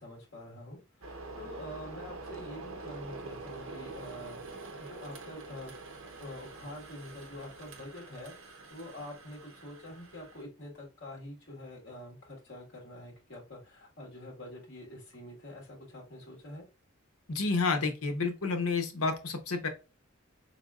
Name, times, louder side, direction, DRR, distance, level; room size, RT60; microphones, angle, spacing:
voice 1, 0.0-4.4 4.8-5.7 6.2-8.3 8.7-16.7, left 1 dB, 55° left, 1.8 m, -46 dB
sound 1, 1.0-10.4, right 3 dB, 70° right, 0.8 m, -46 dB
voice 2, 17.3-19.7, left 4 dB, 85° left, 0.9 m, -30 dB
4.5 x 3.4 x 2.4 m
head